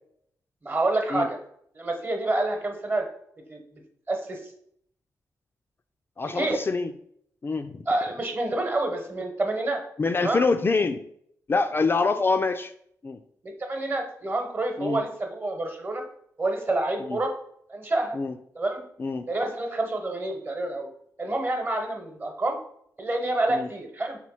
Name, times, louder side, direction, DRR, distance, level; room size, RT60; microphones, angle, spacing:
voice 1, 0.6-1.4 1.7-3.1 3.5-3.6 4.1-4.4 6.3-6.6 7.9-9.8 10.2-10.4 13.4-16.0 16.4-17.3 17.7-18.1 18.5-18.8 19.3-20.9 21.2-22.6 23.0-24.2, right 2 dB, 35° right, 4 dB, 1.0 m, -28 dB
voice 2, 6.2-6.9 7.4-7.9 10.0-11.0 11.5-12.7 13.0-13.2 14.8-15.0 17.0-17.2 18.1-18.3 19.0-19.3 23.5-23.7, left 4 dB, 35° left, 8 dB, 0.3 m, -25 dB
3.4 x 3.0 x 4.8 m, 0.68 s
cardioid pair, 70°, 6 cm